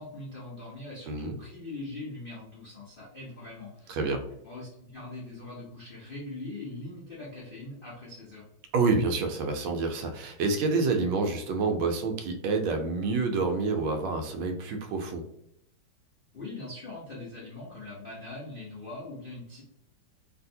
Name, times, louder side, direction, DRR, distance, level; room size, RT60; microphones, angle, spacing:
voice 1, 0.0-4.0 4.4-8.4 16.3-19.6, left 2 dB, 75° left, -7 dB, 0.4 m, -41 dB
voice 2, 1.1-1.4 3.9-4.2 8.7-15.2, right 4 dB, 80° right, 4 dB, 1.3 m, -28 dB
3.2 x 2.6 x 2.7 m, 0.76 s
omnidirectional pair, 2.2 m